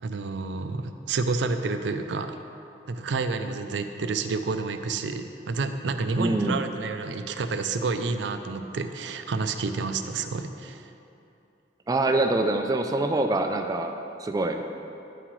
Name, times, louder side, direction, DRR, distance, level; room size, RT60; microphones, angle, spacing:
voice 1, 0.0-2.4 2.9-10.8, right 4 dB, 85° right, 8 dB, 0.5 m, -29 dB
voice 2, 6.2-6.6 11.9-13.9 14.2-14.6, right 2 dB, 20° right, 4 dB, 0.3 m, -25 dB
10.0 x 7.6 x 3.1 m, 2.8 s
head